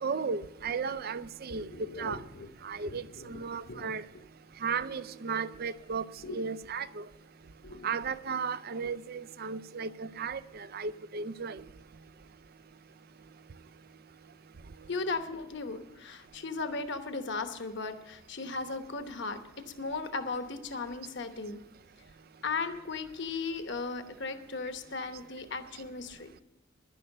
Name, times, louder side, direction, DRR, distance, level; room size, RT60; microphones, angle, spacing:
voice 1, 0.0-2.2 2.6-4.0 4.6-6.1 6.3-7.1 7.8-11.6, right 5 dB, 45° right, 0.5 m, -35 dB
voice 2, 1.7-2.5 2.9-3.3 3.7-3.9 6.2-6.4 7.6-7.9 14.9-21.6 22.4-26.4, left 4 dB, 60° left, 1.0 m, -37 dB
11.0 x 11.0 x 6.5 m
head